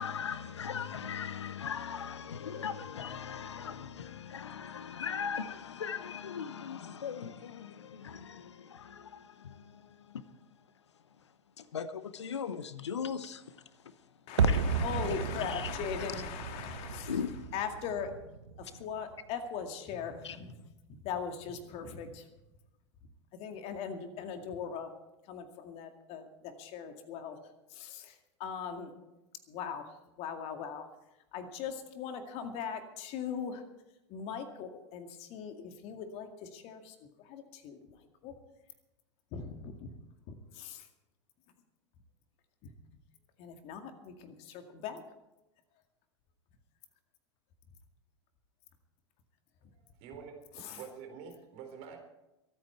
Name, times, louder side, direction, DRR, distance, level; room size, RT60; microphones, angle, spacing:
voice 1, 0.0-10.2 11.6-14.0 14.4-14.6 15.4-15.7 16.0-16.2 17.1-17.5 18.7-18.8 20.2-20.4, left 7 dB, 75° left, 0.9 m, -39 dB
voice 2, 14.3-17.2 17.5-18.1 18.6-20.5 20.9-22.2 23.3-24.9 25.3-27.4 27.7-28.9 29.5-29.8 30.2-30.8 31.3-33.6 34.1-38.0 38.2-38.3 39.3-39.9 40.5-40.9 43.4-45.0 50.5-50.8, left 7 dB, 45° left, 2.1 m, -40 dB
sound 1, 14.4-19.3 19.6-19.7, right 5 dB, 75° right, 1.0 m, -33 dB
voice 3, 50.0-50.4 50.7-52.0, right 7 dB, 45° right, 4.0 m, -46 dB
24.0 x 9.1 x 4.6 m
figure-of-eight pair, 90°, 15 cm